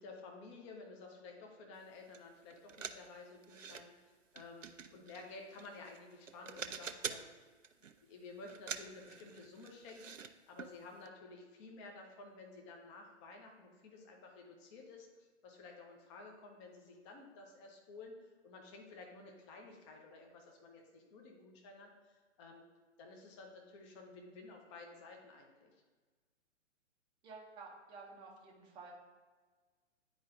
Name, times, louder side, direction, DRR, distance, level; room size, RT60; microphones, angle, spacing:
voice 1, 0.0-4.7 4.9-7.5 8.0-15.1 15.4-22.6 23.0-25.7, left 3 dB, 25° left, 1 dB, 0.9 m, -53 dB
sound 1, 2.1-2.2 2.5-3.8 4.4-6.0 6.3-7.3 7.6-8.0 8.5-10.3 10.6-10.7 11.1-11.2, right 6 dB, 90° right, 0.5 m, -46 dB
voice 2, 27.2-28.9, right 4 dB, 10° right, -2 dB, 0.7 m, -52 dB
9.4 x 4.6 x 2.6 m, 1.4 s
figure-of-eight pair, 125°, 37 cm